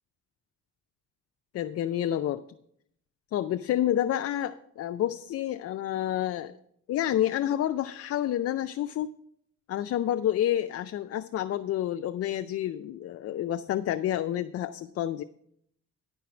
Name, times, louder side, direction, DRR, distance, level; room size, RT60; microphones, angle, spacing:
voice 1, 1.5-2.4 3.3-6.5 6.9-9.1 9.7-15.2, left 11 dB, 55° left, 9 dB, 0.4 m, -29 dB
10.0 x 4.6 x 6.9 m, 0.72 s
cardioid pair, 90°, 30 cm